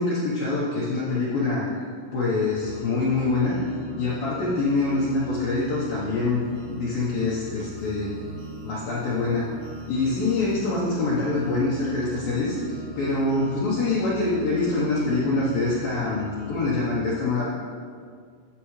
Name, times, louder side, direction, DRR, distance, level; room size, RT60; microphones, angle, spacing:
voice 1, 0.0-1.6 2.1-3.6 4.0-6.4 6.7-8.1 8.6-9.5 9.9-17.4, left 3 dB, 85° left, -7 dB, 2.0 m, -25 dB
sound 1, 2.5-16.7, right 1 dB, 65° right, 2.9 m, -40 dB
12.5 x 7.2 x 3.2 m, 2.1 s
omnidirectional pair, 5.9 m